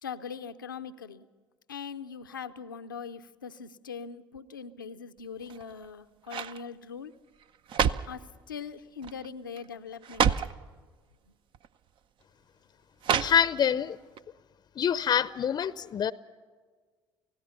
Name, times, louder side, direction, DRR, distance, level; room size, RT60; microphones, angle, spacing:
voice 1, 0.0-1.3 1.7-7.1 8.1-10.3 11.3-11.4, left 6 dB, 90° left, 0.6 m, -41 dB
sound 1, 5.4-5.8 6.3-6.6 7.4-8.2 9.0-9.3 9.6-9.7 10.0-10.6 11.5-11.7 13.0-13.8 14.2-14.3, right 7 dB, 50° right, 0.7 m, -28 dB
voice 2, 13.2-14.0 14.8-16.1, left 8 dB, 40° left, 0.6 m, -26 dB
29.5 x 16.5 x 5.7 m
hypercardioid pair, 55°, 11 cm